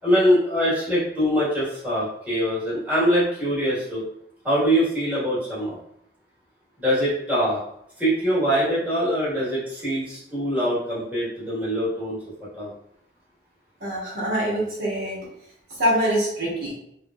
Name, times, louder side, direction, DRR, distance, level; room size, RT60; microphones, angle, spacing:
voice 1, 0.0-4.0 4.4-5.8 6.8-7.6 8.0-12.2 12.5-12.7, equal, 10° right, -10 dB, 1.1 m, -23 dB
voice 2, 13.8-15.2 15.8-16.7, equal, 70° right, -7 dB, 1.3 m, -24 dB
2.9 x 2.5 x 2.2 m, 0.74 s
head